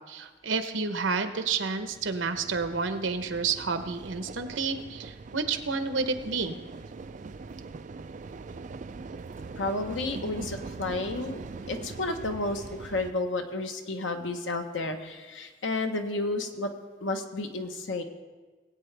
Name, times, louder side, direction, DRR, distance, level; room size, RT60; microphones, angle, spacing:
voice 1, 0.1-6.6, right 4 dB, 85° right, 9 dB, 0.9 m, -30 dB
sound 1, 1.2-13.1, right 4 dB, 40° right, 0.4 m, -42 dB
voice 2, 9.6-11.4 11.7-16.7 17.0-18.0, left 2 dB, 80° left, 5 dB, 1.1 m, -31 dB
20.0 x 8.5 x 3.4 m, 1.4 s
head